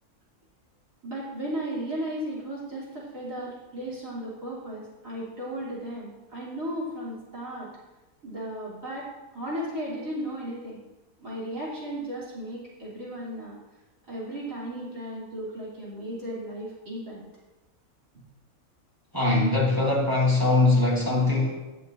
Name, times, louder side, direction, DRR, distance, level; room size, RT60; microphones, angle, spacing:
voice 1, 1.0-7.7 8.2-10.8 11.2-13.6 14.0-17.3, right 1 dB, 65° right, -7 dB, 3.8 m, -35 dB
voice 2, 19.1-21.6, left 2 dB, 15° right, -4 dB, 1.6 m, -22 dB
17.5 x 6.5 x 2.7 m, 1.1 s
omnidirectional pair, 1.5 m